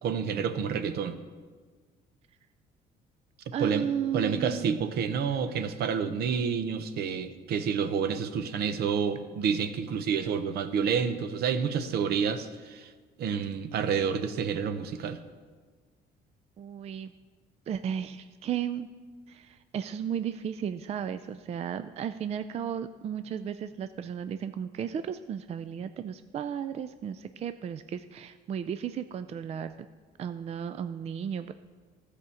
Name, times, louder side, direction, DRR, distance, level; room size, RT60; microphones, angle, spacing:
voice 1, 0.0-1.2 3.6-3.9 4.1-12.9 13.2-15.2, right 6 dB, 70° right, 10 dB, 0.9 m, -29 dB
voice 2, 3.5-5.0 16.6-17.1 17.7-18.9 19.3-29.7 30.2-31.5, right 8 dB, 40° right, 11 dB, 0.4 m, -34 dB
13.5 x 5.0 x 7.0 m, 1.5 s
cardioid pair, 110°, 17 cm